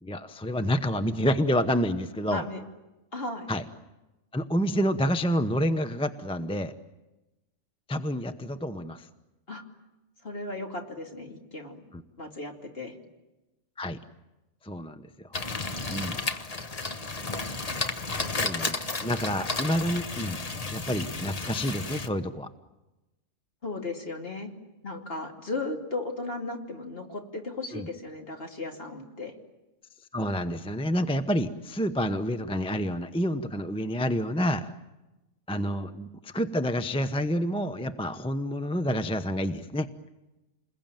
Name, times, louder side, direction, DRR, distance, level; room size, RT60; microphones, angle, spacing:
voice 1, 0.0-2.4 3.5-3.6 4.3-6.7 7.9-9.1 11.9-12.0 13.8-14.0 14.6-15.3 15.9-16.2 18.1-20.4 20.7-22.5 27.7-27.9 30.1-34.7 35.5-39.9, equal, 5° left, 9 dB, 0.7 m, -28 dB
voice 2, 2.3-2.6 3.1-3.5 9.5-9.6 10.2-11.8 12.2-13.0 23.6-24.5 24.8-29.3, left 2 dB, 45° left, 2 dB, 3.0 m, -36 dB
sound 1, 15.3-22.1, left 3 dB, 30° left, 1.2 m, -32 dB
28.5 x 21.5 x 9.1 m, 1.0 s
omnidirectional pair, 1.3 m